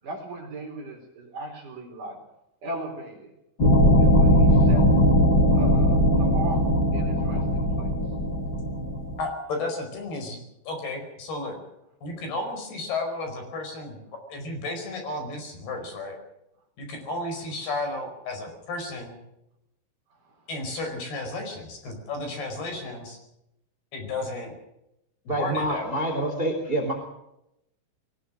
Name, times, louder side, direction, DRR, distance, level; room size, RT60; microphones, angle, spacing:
voice 1, 0.0-2.2 2.6-3.3 4.0-4.9 5.5-6.6 6.9-7.9 20.2-20.5, right 2 dB, 45° right, 2 dB, 5.2 m, -38 dB
sound 1, 3.6-9.2, equal, 25° left, 3.6 m, -20 dB
voice 2, 9.2-10.4 10.7-11.6 12.0-14.0 14.3-16.2 16.8-19.2 20.5-23.2 23.9-24.6 25.3-26.1, left 2 dB, 55° left, 5 dB, 6.8 m, -33 dB
voice 3, 25.3-26.9, right 1 dB, 15° right, 4 dB, 2.9 m, -27 dB
21.5 x 19.5 x 6.4 m, 0.84 s
omnidirectional pair, 5.7 m